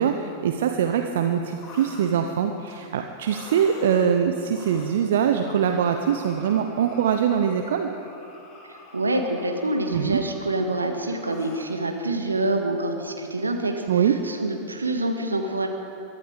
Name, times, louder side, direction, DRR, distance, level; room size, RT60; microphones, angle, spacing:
voice 1, 0.0-7.9 9.9-10.2 13.9-14.2, right 8 dB, 60° right, 6 dB, 0.8 m, -23 dB
sound 1, 1.6-2.2 2.6-2.8 3.2-4.1 4.5-5.1 5.4-11.7, left 3 dB, 35° left, 3.4 m, -46 dB
voice 2, 8.6-15.7, right 2 dB, 80° right, 4 dB, 1.5 m, -26 dB
22.5 x 12.0 x 5.1 m, 2.9 s
figure-of-eight pair, 90°, 0 cm